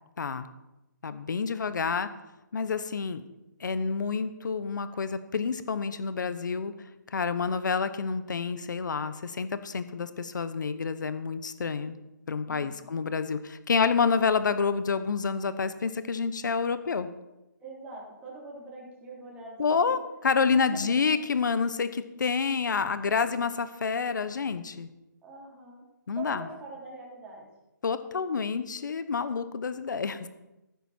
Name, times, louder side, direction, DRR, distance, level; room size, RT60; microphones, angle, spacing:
voice 1, 1.0-2.1 2.5-3.2 3.6-6.7 7.1-12.0 12.3-17.1 19.6-24.9 26.1-26.4 27.8-30.3, left 5 dB, 65° left, 12 dB, 1.1 m, -28 dB
voice 2, 12.5-12.9 17.6-20.0 20.5-20.8 25.2-25.9 26.1-27.5, right 3 dB, 10° right, -5 dB, 3.8 m, -44 dB
14.5 x 12.5 x 4.5 m, 0.96 s
hypercardioid pair, 150°, 11 cm